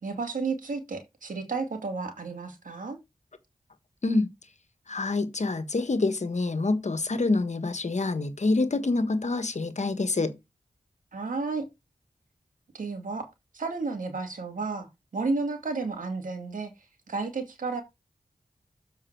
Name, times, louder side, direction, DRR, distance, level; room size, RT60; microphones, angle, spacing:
voice 1, 0.0-3.0 11.1-11.6 12.7-13.3 13.5-14.9 15.1-16.7 17.1-17.8, right 4 dB, 80° right, 2.3 m, -32 dB
voice 2, 4.9-10.3, left 3 dB, 60° left, 1.5 m, -26 dB
7.5 x 5.5 x 4.7 m
cardioid pair, 45°, 14 cm